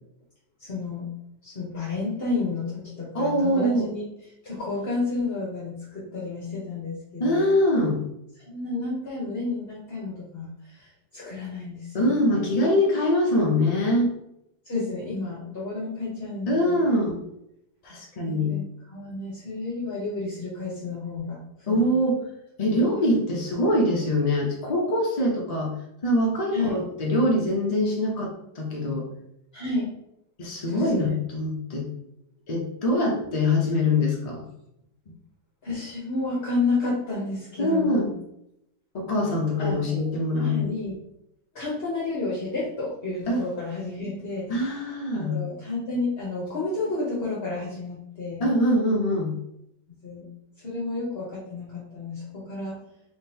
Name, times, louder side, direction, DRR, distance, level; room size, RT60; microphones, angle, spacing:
voice 1, 0.6-1.1 1.4-4.0 4.4-7.5 8.4-12.4 14.6-17.0 18.2-21.4 21.7-21.9 26.5-26.8 29.5-29.9 30.7-31.1 35.6-38.1 39.6-40.0 40.4-41.0 41.5-44.6 45.1-48.4 49.9-50.2 50.6-52.8, left 3 dB, 40° left, -6 dB, 1.1 m, -31 dB
voice 2, 3.1-3.9 7.2-8.0 11.9-14.1 16.5-17.2 17.8-18.5 21.7-22.2 22.6-25.7 26.0-29.1 30.4-31.8 32.5-34.4 37.6-38.1 38.9-40.7 43.3-43.4 44.5-45.4 48.4-49.4, left 1 dB, 60° left, -1 dB, 0.4 m, -23 dB
3.7 x 3.5 x 2.8 m, 0.81 s
omnidirectional pair, 1.8 m